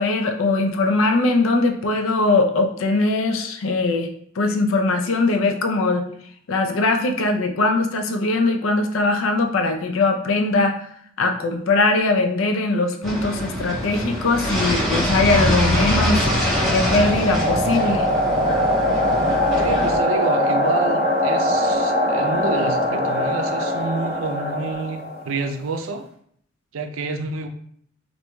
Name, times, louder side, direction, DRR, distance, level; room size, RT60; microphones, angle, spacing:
voice 1, 0.0-4.1 4.4-6.1 6.5-10.8 11.2-16.2 16.7-18.1, left 3 dB, 75° left, 5 dB, 0.5 m, -20 dB
sound 1, 13.0-20.0, equal, ahead, 1.5 m, -24 dB
sound 2, 14.5-25.4, left 1 dB, 30° right, 0.8 m, -22 dB
voice 2, 19.6-26.1 26.7-27.5, right 4 dB, 80° right, 6 dB, 0.4 m, -28 dB
4.5 x 2.6 x 2.2 m, 0.65 s
head